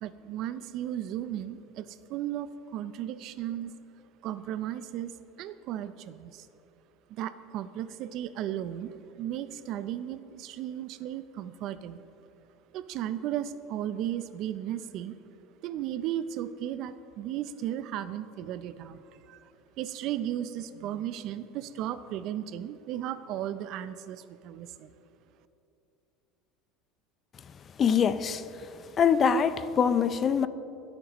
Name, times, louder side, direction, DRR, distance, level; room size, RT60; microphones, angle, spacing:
voice 1, 0.0-3.7 4.2-5.1 5.4-6.5 7.1-12.0 12.7-15.2 15.6-19.5 19.8-24.9, right 11 dB, 55° right, 0.5 m, -35 dB
voice 2, 27.8-28.4 29.0-30.5, left 7 dB, 30° left, 0.5 m, -23 dB
26.0 x 8.8 x 3.0 m
supercardioid pair, 130°, 0 cm